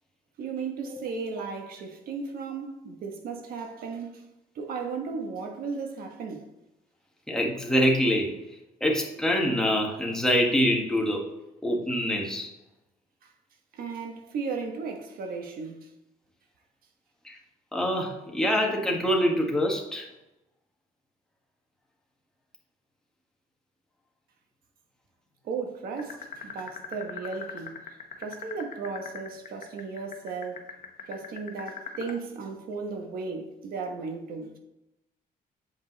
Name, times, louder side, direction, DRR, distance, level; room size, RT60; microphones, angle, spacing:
voice 1, 0.4-4.2 4.5-6.5 13.2-13.3 13.7-15.9 25.4-30.7 31.0-34.6, right 4 dB, 75° right, 1.2 m, -35 dB
voice 2, 7.3-8.4 8.8-11.3 11.6-12.5 17.2-17.4 17.7-20.1, equal, 5° left, 1.4 m, -25 dB
sound 1, 26.0-32.2, left 8 dB, 55° left, 0.9 m, -38 dB
7.9 x 5.2 x 3.9 m
cardioid pair, 130°, 15 cm